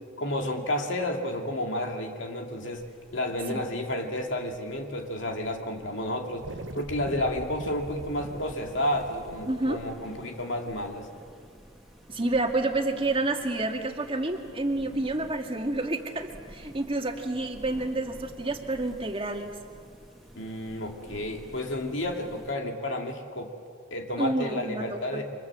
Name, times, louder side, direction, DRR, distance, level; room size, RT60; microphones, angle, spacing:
voice 1, 0.2-2.8 3.1-6.4 6.7-11.1 20.4-23.5 23.9-25.2, left 1 dB, 70° left, 3 dB, 2.5 m, -31 dB
sound 1, 2.7-22.5, equal, ahead, 2.7 m, -51 dB
sound 2, 6.4-11.1, right 2 dB, 65° right, 1.0 m, -43 dB
voice 2, 9.5-9.8 12.1-19.5 24.2-25.2, right 2 dB, 30° right, 3 dB, 2.1 m, -29 dB
29.0 x 25.5 x 7.6 m, 2.2 s
head